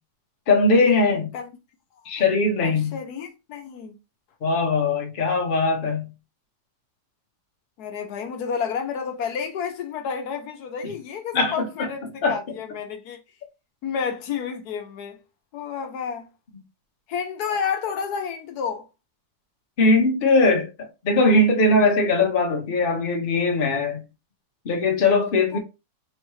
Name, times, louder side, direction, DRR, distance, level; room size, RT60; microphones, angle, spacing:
voice 1, 0.5-1.3 2.1-3.0 4.4-6.1 10.8-10.9 11.3-11.5 11.8-11.9 12.2-12.4 19.8-24.0 24.6-25.6, left 2 dB, 40° left, 0.8 m, -20 dB
voice 2, 2.6-4.0 7.8-13.2 13.8-15.2 15.5-16.3 17.1-18.8 25.5-25.6, left 6 dB, 70° left, 1.2 m, -30 dB
4.4 x 2.8 x 3.1 m
omnidirectional pair, 1.8 m